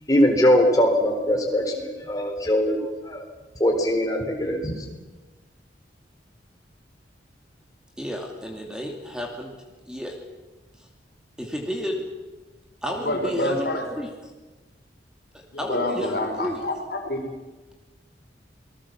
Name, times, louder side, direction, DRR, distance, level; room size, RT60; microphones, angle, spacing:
voice 1, 0.1-2.8 3.0-3.3 3.6-4.7, equal, 20° left, 2 dB, 4.0 m, -21 dB
voice 2, 8.0-9.5 9.9-10.2 11.4-12.1 12.8-14.1 15.6-16.6, equal, 5° right, 1 dB, 2.7 m, -31 dB
voice 3, 12.9-13.9 15.5-17.3, left 1 dB, 60° left, 3 dB, 4.8 m, -28 dB
27.5 x 19.5 x 7.3 m, 1.2 s
head